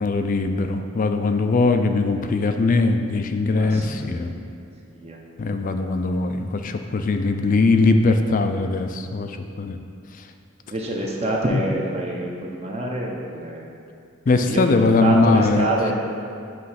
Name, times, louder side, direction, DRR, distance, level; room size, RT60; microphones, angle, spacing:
voice 1, 0.0-4.3 5.4-9.8 14.3-15.9, left 3 dB, 40° left, 7 dB, 0.4 m, -21 dB
voice 2, 3.6-4.4 4.9-5.2 10.6-12.3 12.6-13.7 14.5-14.6 15.0-15.9, right 1 dB, 30° right, -2 dB, 0.7 m, -26 dB
7.6 x 3.2 x 5.7 m, 2.5 s
head